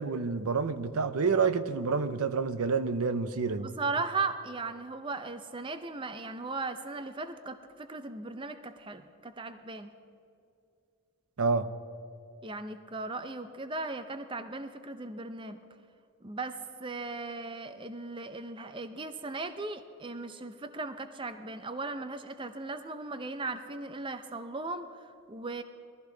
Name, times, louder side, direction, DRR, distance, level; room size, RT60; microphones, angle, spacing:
voice 1, 0.0-3.7 11.4-11.7, right 4 dB, 80° right, 0.6 m, -28 dB
voice 2, 3.6-9.9 12.4-15.6 16.2-25.6, right 3 dB, 20° right, 0.5 m, -37 dB
20.5 x 14.5 x 3.9 m
head